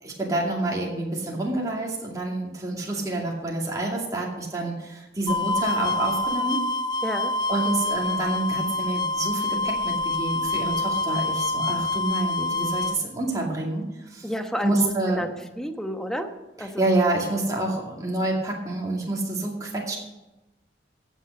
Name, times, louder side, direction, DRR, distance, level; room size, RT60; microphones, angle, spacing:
voice 1, 0.0-6.6 7.5-14.3 14.6-15.2 16.6-20.0, right 2 dB, 20° right, -3 dB, 2.4 m, -28 dB
sound 1, 5.3-13.0, left 2 dB, 25° left, 0.5 m, -26 dB
voice 2, 7.0-7.3 7.9-8.0 14.2-16.3 16.6-16.9, equal, 5° left, 5 dB, 1.1 m, -31 dB
16.5 x 6.8 x 6.5 m, 1.0 s
head